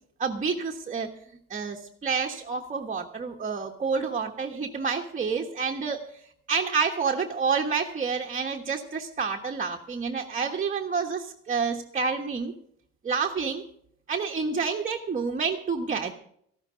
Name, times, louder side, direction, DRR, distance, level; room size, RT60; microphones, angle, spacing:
voice 1, 0.2-1.1 1.5-6.2 6.5-12.5 13.0-13.6 14.1-16.1, right 5 dB, 25° right, 1 dB, 1.3 m, -29 dB
14.5 x 12.5 x 5.1 m, 0.67 s
cardioid pair, 130°, 29 cm